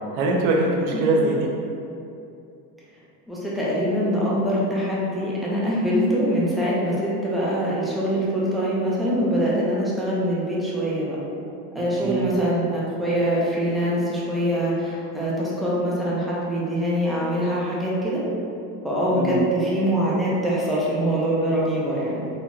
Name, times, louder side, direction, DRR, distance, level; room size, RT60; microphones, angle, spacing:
voice 1, 0.1-1.5 12.0-12.3 19.1-19.4, right 2 dB, 65° right, -1 dB, 0.8 m, -22 dB
voice 2, 3.3-11.2 11.7-18.2 18.8-22.2, equal, ahead, -8 dB, 0.6 m, -24 dB
4.2 x 2.8 x 2.4 m, 2.6 s
supercardioid pair, 115°, 46 cm